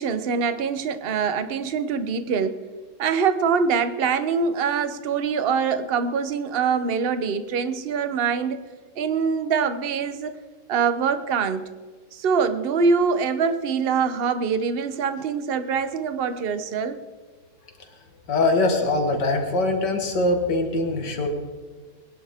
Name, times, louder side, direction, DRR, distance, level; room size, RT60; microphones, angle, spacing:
voice 1, 0.0-2.6 3.0-8.6 9.0-10.4 10.7-11.7 12.1-17.0, right 5 dB, 45° right, 11 dB, 0.8 m, -24 dB
voice 2, 18.3-21.3, left 2 dB, 75° left, 3 dB, 2.3 m, -22 dB
22.0 x 11.0 x 3.6 m, 1.4 s
omnidirectional pair, 1.9 m